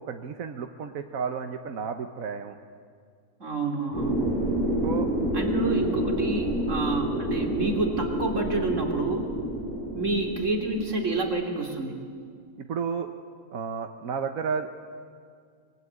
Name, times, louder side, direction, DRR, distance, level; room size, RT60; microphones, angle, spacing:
voice 1, 0.0-2.6 4.8-5.1 12.6-13.1 13.5-14.7, right 6 dB, 75° right, 6 dB, 1.5 m, -32 dB
voice 2, 3.4-4.2 5.3-9.3 9.9-12.0, right 2 dB, 60° right, 3 dB, 3.5 m, -28 dB
sound 1, 3.9-11.3, right 1 dB, 15° left, 6.2 m, -28 dB
24.0 x 23.5 x 9.6 m, 2.2 s
omnidirectional pair, 1.5 m